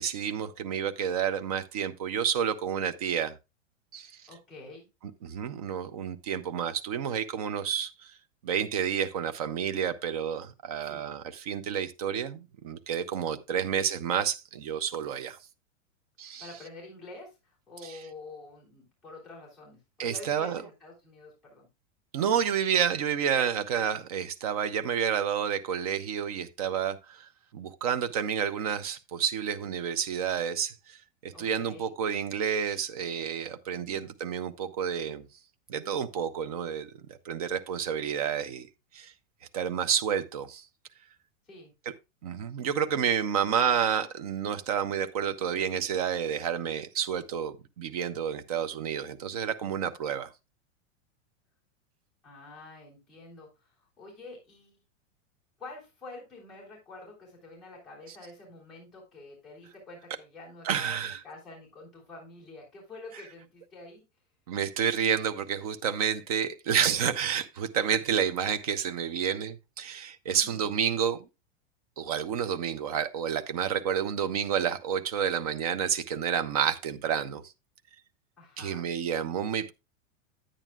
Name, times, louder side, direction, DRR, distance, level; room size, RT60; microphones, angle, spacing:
voice 1, 0.0-3.4 3.9-4.1 5.2-7.9 8.4-15.4 16.2-16.5 17.8-17.9 20.0-20.6 22.1-31.0 31.2-35.3 35.7-38.7 38.9-39.1 39.5-40.6 42.2-50.3 60.6-61.2 64.5-71.2 72.0-77.4 78.6-79.7, right 8 dB, 30° right, 0.4 m, -30 dB
voice 2, 4.3-4.9 10.8-11.1 13.5-13.8 16.4-21.7 31.3-31.9 33.7-34.2 41.4-41.7 52.2-54.8 55.6-64.0 70.2-70.6 78.4-78.9, left 2 dB, ahead, 3.4 m, -48 dB
9.9 x 9.1 x 2.3 m
supercardioid pair, 180°, 37 cm